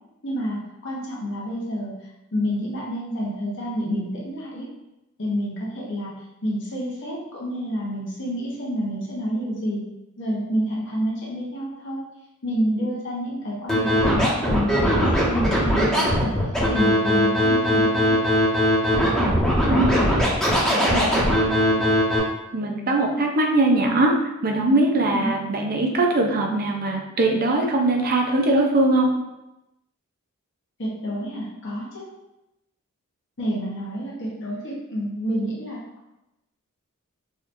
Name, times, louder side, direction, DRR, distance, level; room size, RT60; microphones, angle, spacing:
voice 1, 0.2-2.0 2.3-4.7 5.2-9.9 10.2-12.0 12.4-18.2 25.1-25.3 30.8-32.1 33.4-35.8, equal, 55° left, -5 dB, 1.1 m, -28 dB
Scratching (performance technique), 13.7-22.2, equal, 5° left, 1.1 m, -20 dB
voice 2, 19.7-20.0 20.9-21.8 22.5-24.1 24.4-29.1, right 2 dB, 40° right, 1 dB, 0.6 m, -21 dB
4.8 x 2.9 x 2.6 m, 0.93 s
head